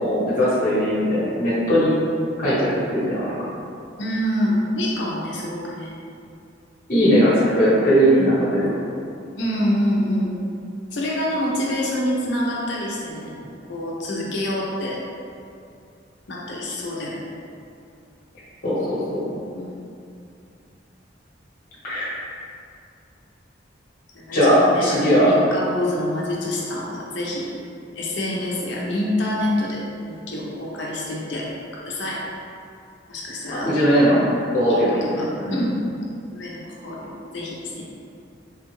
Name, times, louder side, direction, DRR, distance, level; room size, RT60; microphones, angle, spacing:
voice 1, 0.0-1.9 2.4-3.3 6.9-8.8 14.2-14.3 18.6-19.3 21.8-22.1 24.3-25.3 33.5-34.2 34.5-35.6, equal, 45° left, -8 dB, 1.1 m, -19 dB
voice 2, 4.0-5.9 9.3-10.4 10.9-13.3 13.7-15.0 16.3-17.2 19.6-19.9 24.1-27.5 27.9-31.5 31.8-32.2 33.1-33.7 34.7-34.8 35.2-35.7 36.3-37.8, left 1 dB, 75° left, -4 dB, 0.6 m, -26 dB
3.4 x 2.3 x 3.0 m, 2.5 s
head